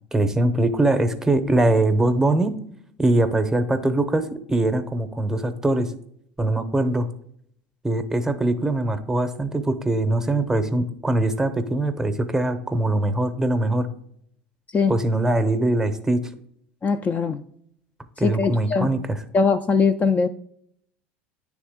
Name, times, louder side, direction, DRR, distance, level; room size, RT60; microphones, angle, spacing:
voice 1, 0.1-2.6 3.0-5.9 6.4-7.1 7.8-13.9 14.9-16.2 18.2-19.2, right 2 dB, 10° right, 0.7 m, -22 dB
voice 2, 16.8-17.4 18.2-18.9 19.3-20.3, left 5 dB, 25° left, 0.3 m, -21 dB
9.4 x 3.5 x 3.5 m
supercardioid pair, 95°, 6 cm